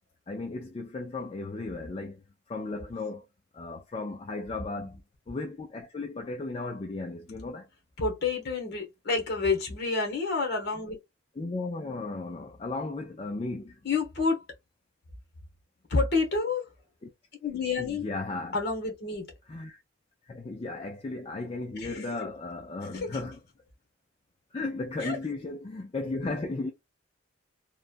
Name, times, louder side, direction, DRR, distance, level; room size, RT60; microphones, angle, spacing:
voice 1, 0.3-2.2 2.5-3.2 3.5-4.9 5.3-7.7 11.4-13.8 17.0-17.1 17.8-18.6 19.5-19.8 20.2-23.4 24.5-26.7, left 3 dB, 30° left, 0.3 m, -35 dB
voice 2, 8.0-11.0 13.8-14.4 15.9-16.7 17.4-18.1 18.5-19.2 21.8-22.1 22.8-23.2 25.0-25.2, left 4 dB, 55° left, 1.1 m, -29 dB
3.1 x 2.2 x 2.4 m
head